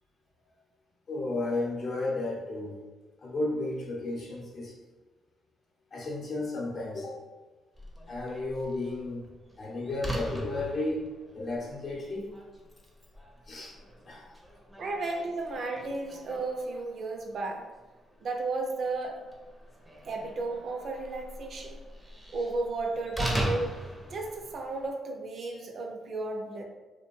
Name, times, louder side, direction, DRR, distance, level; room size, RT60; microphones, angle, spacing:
voice 1, 1.1-2.8 3.2-4.8 5.9-7.3 8.1-9.3 9.6-11.1 11.3-12.4 13.5-13.8 14.1-14.3, left 2 dB, 50° left, -2 dB, 0.7 m, -33 dB
Slam, 7.7-24.9, right 1 dB, 5° right, 0.5 m, -40 dB
voice 2, 14.8-17.7 18.2-19.2 20.1-21.8 22.3-23.8 24.1-26.6, right 3 dB, 55° right, 2 dB, 0.4 m, -34 dB
2.5 x 2.1 x 3.0 m, 1.2 s
cardioid pair, 90°, 0 cm